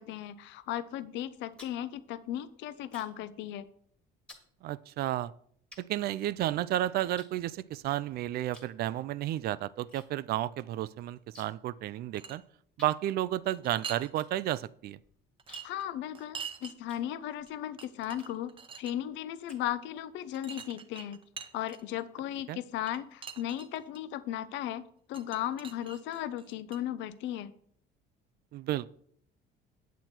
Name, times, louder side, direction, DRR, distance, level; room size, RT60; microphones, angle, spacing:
voice 1, 0.0-3.7 15.6-18.5 18.8-21.2 21.5-24.8 25.1-27.5, left 12 dB, 70° left, 14 dB, 0.7 m, -36 dB
sound 1, 1.3-3.3 3.6-3.9 4.3-4.5 5.1-5.2 5.7-6.7 7.2-8.0 8.5-8.8 9.1-10.1 10.3-10.4 10.7-11.7 12.0-12.1 12.8-17.6 18.1-18.6 19.0-20.1, left 2 dB, 5° left, 1.6 m, -56 dB
voice 2, 4.6-5.3 5.8-12.4 12.8-15.0 22.5-22.6 28.5-28.9, right 13 dB, 55° right, 19 dB, 0.4 m, -32 dB
sound 2, 11.9-12.4 13.5-14.1 14.5-14.6 15.4-16.7 17.5-17.6 17.8-18.9 20.3-22.0 22.9-24.0 25.1-26.8, right 6 dB, 25° right, 0.8 m, -44 dB
9.1 x 8.2 x 4.4 m, 0.63 s
cardioid pair, 155°, 20 cm